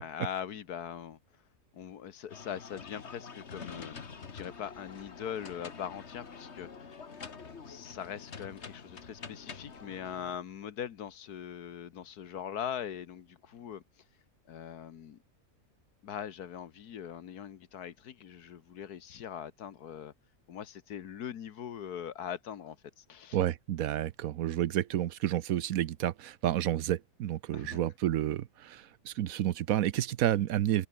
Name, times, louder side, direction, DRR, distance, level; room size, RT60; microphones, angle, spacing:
voice 1, 0.0-1.2 1.7-6.7 7.6-13.8 14.5-15.2 16.0-20.1 20.5-23.4 27.5-27.8, left 9 dB, 75° left, 1.7 m, -41 dB
sound 1, 2.3-10.4, left 5 dB, 45° left, 1.9 m, -47 dB
voice 2, 23.3-30.9, right 12 dB, 70° right, 1.1 m, -30 dB
omnidirectional pair, 1.7 m